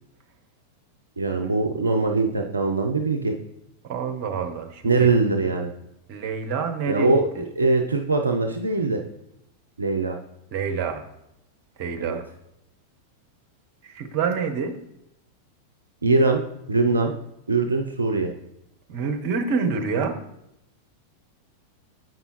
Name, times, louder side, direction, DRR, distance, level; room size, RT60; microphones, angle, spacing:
voice 1, 1.2-3.3 4.8-5.7 6.9-7.2 7.6-9.0 9.8-10.2 12.0-12.2 16.0-16.4 16.7-17.1 17.5-18.3, right 3 dB, 75° right, 4 dB, 0.4 m, -22 dB
voice 2, 3.9-5.1 6.1-7.4 10.5-11.0 11.8-12.2 13.8-14.8 18.9-20.1, right 5 dB, 45° right, 6 dB, 0.8 m, -27 dB
7.5 x 5.4 x 3.0 m, 0.82 s
figure-of-eight pair, 90°, 0 cm